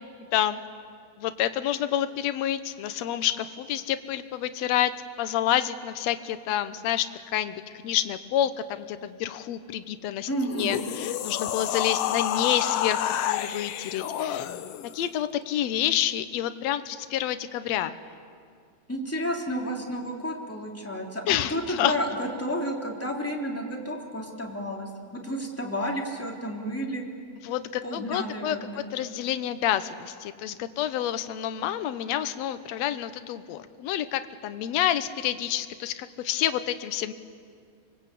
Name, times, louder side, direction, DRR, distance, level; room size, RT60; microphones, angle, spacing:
voice 1, 1.2-4.9 5.2-7.6 7.8-14.5 14.9-17.9 21.3-21.9 27.4-37.1, left 11 dB, 65° left, 11 dB, 1.9 m, -28 dB
voice 2, 10.3-10.8 18.9-27.0 27.8-28.8, equal, 5° left, -1 dB, 2.9 m, -31 dB
sound 1, 10.4-15.0, left 11 dB, 85° left, 1.3 m, -29 dB
25.0 x 23.0 x 8.5 m, 2.2 s
omnidirectional pair, 3.8 m